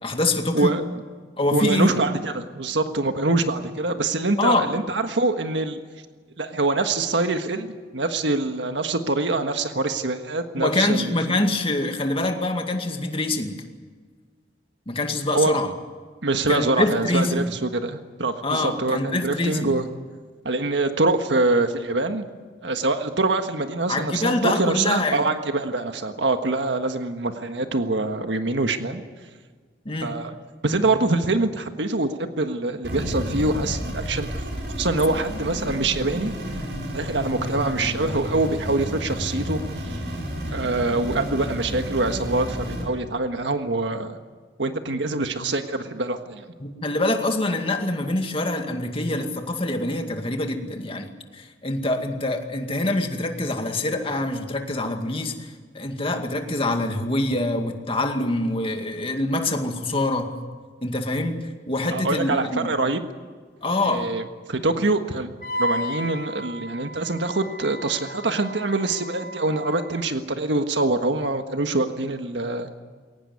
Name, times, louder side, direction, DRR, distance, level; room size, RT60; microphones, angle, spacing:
voice 1, 0.0-0.8 1.4-2.0 4.4-4.7 10.6-13.6 14.9-15.7 16.5-17.4 18.4-19.7 23.9-25.2 29.9-30.1 46.6-60.3 60.8-61.4 61.7-62.7 63.6-64.1, left 2 dB, 30° left, 5 dB, 2.2 m, -25 dB
voice 2, 1.5-5.8 6.4-11.4 15.3-15.6 16.2-19.9 20.4-22.3 22.6-29.0 30.0-30.3 30.6-34.4 34.8-36.3 36.9-40.0 40.5-44.2 44.6-46.4 61.9-63.0 63.9-65.3 65.6-72.8, right 2 dB, 85° right, 7 dB, 1.6 m, -24 dB
sound 1, 32.8-42.8, equal, 70° right, 7.1 m, -31 dB
Wind instrument woodwind instrument, 65.4-70.0, equal, 50° left, 2.1 m, -33 dB
22.5 x 18.5 x 9.5 m, 1.5 s
head